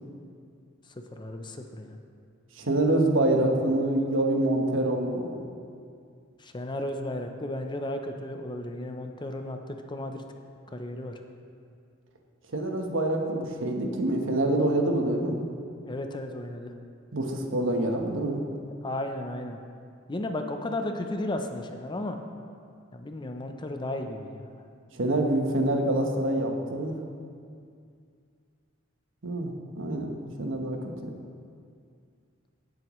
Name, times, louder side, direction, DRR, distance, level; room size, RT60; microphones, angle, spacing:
voice 1, 1.2-2.0 6.4-9.6 9.9-10.2 10.7-11.2 15.9-16.7 18.8-19.6 20.1-22.2 22.9-24.6, left 1 dB, 25° left, 5 dB, 0.6 m, -34 dB
voice 2, 2.6-5.4 12.5-15.5 17.1-18.4 24.9-27.0 29.2-30.1 30.4-31.1, right 1 dB, 70° right, 2 dB, 1.1 m, -26 dB
17.0 x 7.7 x 3.1 m, 2.3 s
head